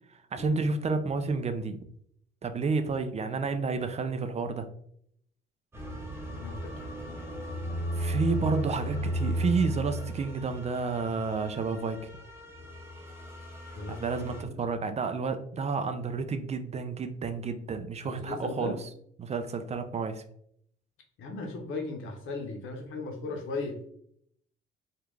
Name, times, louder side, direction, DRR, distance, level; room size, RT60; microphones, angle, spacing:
voice 1, 0.3-1.8 2.4-4.7 8.0-12.0 13.9-18.9 19.2-20.2, right 4 dB, 35° right, 8 dB, 0.4 m, -30 dB
sound 1, 5.7-14.4, right 1 dB, 10° right, 0.9 m, -35 dB
voice 2, 6.3-6.7 13.7-14.6 18.0-18.8 21.2-23.9, left 3 dB, 85° left, 3 dB, 0.8 m, -37 dB
3.4 x 2.4 x 3.1 m, 0.68 s
cardioid pair, 90°, 20 cm